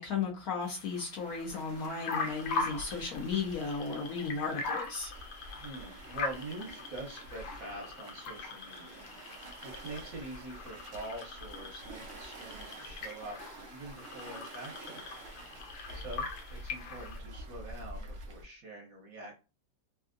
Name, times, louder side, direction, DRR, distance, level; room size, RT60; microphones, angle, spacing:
voice 1, 0.0-5.1, left 5 dB, 65° left, -1 dB, 1.0 m, -35 dB
sound 1, 0.6-17.2, left 4 dB, 85° left, 1.5 m, -41 dB
Waves surf, 1.2-18.4, right 1 dB, 85° right, 0.5 m, -48 dB
voice 2, 5.6-13.4 13.7-15.0 15.9-19.4, right 2 dB, 60° right, 0 dB, 1.0 m, -45 dB
3.4 x 2.6 x 2.5 m, 0.32 s
omnidirectional pair, 2.0 m